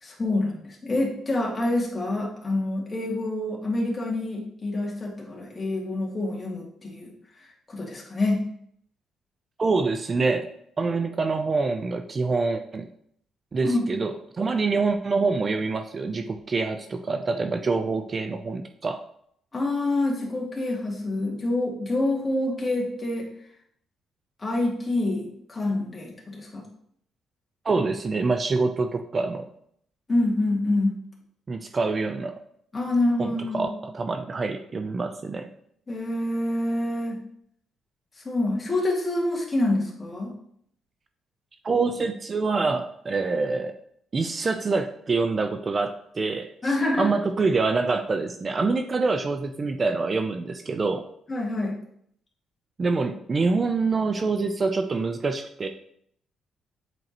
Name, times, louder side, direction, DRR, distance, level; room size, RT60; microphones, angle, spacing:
voice 1, 0.0-7.1 7.7-8.4 13.6-13.9 19.5-23.3 24.4-26.6 30.1-31.0 32.7-33.8 35.9-37.2 38.2-40.3 46.6-47.1 51.3-51.8, left 2 dB, 25° left, -3 dB, 2.1 m, -26 dB
voice 2, 9.6-10.5 10.8-12.9 13.5-19.0 27.6-29.5 31.5-32.3 33.2-35.5 41.6-43.7 44.1-51.0 52.8-55.7, right 4 dB, 35° right, 7 dB, 0.5 m, -26 dB
7.8 x 4.6 x 2.9 m, 0.68 s
cardioid pair, 90°, 0 cm